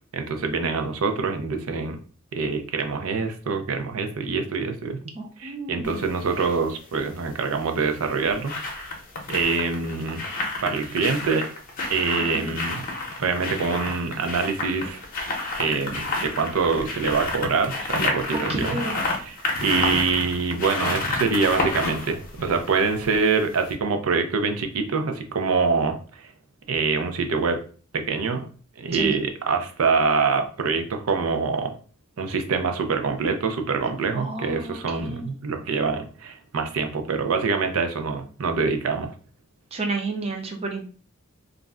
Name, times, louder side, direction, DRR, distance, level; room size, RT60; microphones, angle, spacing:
voice 1, 0.1-2.0 2.3-5.0 5.4-8.6 9.3-10.2 10.6-11.5 11.9-12.8 13.2-15.0 15.6-18.8 19.2-26.2 26.7-27.6 27.9-28.5 28.8-31.7 32.2-39.1, right 4 dB, 85° right, 6 dB, 0.5 m, -25 dB
voice 2, 5.1-6.0 12.3-12.5 18.3-19.0 28.9-29.2 34.1-35.3 39.7-40.9, right 3 dB, 30° right, 3 dB, 0.5 m, -31 dB
sound 1, 5.8-6.6 7.8-23.4 23.7-23.8, left 2 dB, 40° left, 0.7 m, -30 dB
2.4 x 2.1 x 3.5 m, 0.40 s
head